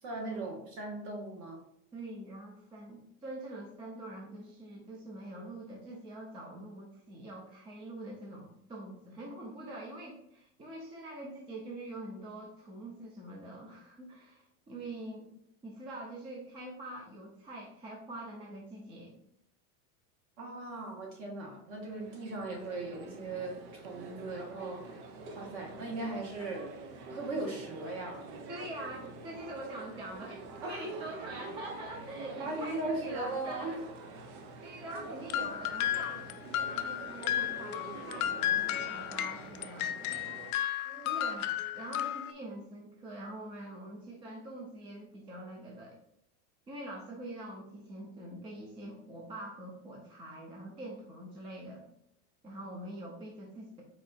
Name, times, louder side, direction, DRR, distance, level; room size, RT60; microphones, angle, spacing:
voice 1, 0.0-1.6 20.4-25.0 25.3-26.7 27.1-28.2 30.6-31.0 32.4-33.8 40.8-41.1, right 2 dB, 55° right, -1 dB, 1.8 m, -38 dB
voice 2, 1.9-15.3 15.6-19.1 28.5-33.8 34.6-40.3 41.0-46.0 46.7-51.8 52.4-53.8, right 1 dB, 15° right, -1 dB, 0.4 m, -44 dB
sound 1, 21.7-40.5, right 3 dB, 85° right, 0.9 m, -47 dB
sound 2, 35.3-42.3, left 11 dB, 80° left, 0.5 m, -33 dB
4.4 x 2.7 x 4.0 m, 0.76 s
supercardioid pair, 150°, 43 cm